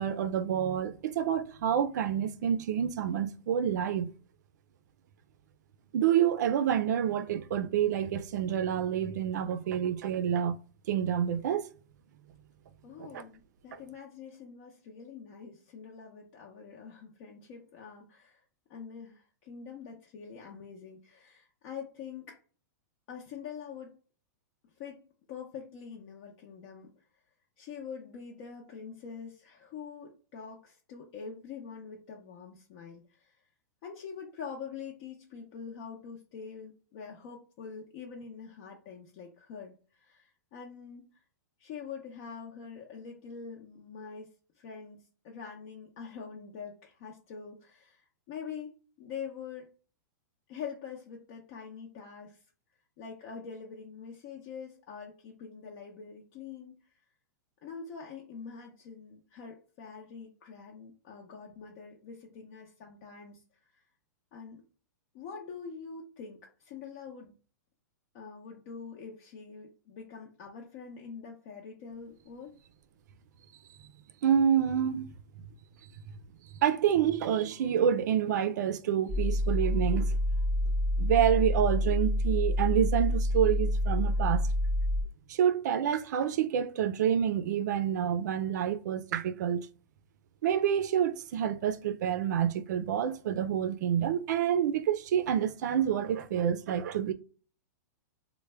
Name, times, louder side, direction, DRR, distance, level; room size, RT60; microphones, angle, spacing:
voice 1, 0.0-4.1 5.9-10.6 10.9-11.7 13.0-13.2 13.7-13.8 74.2-75.1 76.6-80.2 81.0-84.4 85.3-89.7 90.4-97.1, right 9 dB, 65° right, 0.4 m, -28 dB
voice 2, 12.8-18.4 18.7-22.4 23.1-23.9 24.8-25.0 25.3-26.9 27.6-33.4 33.8-41.2 41.6-49.7 50.5-52.4 53.0-56.9 57.6-63.4 63.7-63.8 64.3-64.6 65.1-67.3 68.1-72.5, left 6 dB, 45° left, 0.6 m, -45 dB
sound 1, 79.1-85.0, left 1 dB, 5° right, 0.6 m, -28 dB
3.3 x 2.1 x 3.3 m
hypercardioid pair, 150°, 10 cm